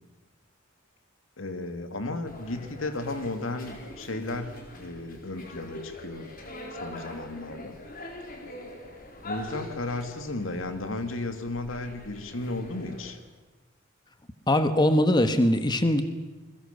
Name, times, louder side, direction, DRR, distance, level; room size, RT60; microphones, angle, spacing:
voice 1, 1.4-6.3 6.7-7.8 9.2-13.2, left 2 dB, 80° left, 8 dB, 2.4 m, -34 dB
sound 1, 2.3-13.1, left 1 dB, 45° left, 4.4 m, -43 dB
voice 2, 14.5-16.0, left 1 dB, 20° left, 9 dB, 1.4 m, -21 dB
28.0 x 22.0 x 6.8 m, 1.2 s
head